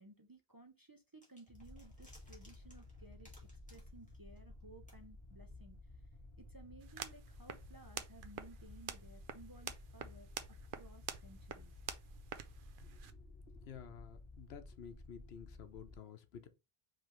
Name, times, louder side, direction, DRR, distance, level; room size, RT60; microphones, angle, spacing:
voice 1, 0.0-6.1 6.4-11.7, right 2 dB, 25° right, 0.6 m, -59 dB
sound 1, 1.2-4.6 4.9-5.0, equal, 5° left, 1.9 m, -64 dB
sound 2, 1.5-16.0, left 2 dB, 30° left, 1.0 m, -55 dB
sound 3, 6.8-13.1, right 8 dB, 60° right, 0.7 m, -48 dB
voice 2, 12.8-16.5, left 8 dB, 85° left, 1.0 m, -53 dB
5.1 x 3.3 x 3.0 m
omnidirectional pair, 1.0 m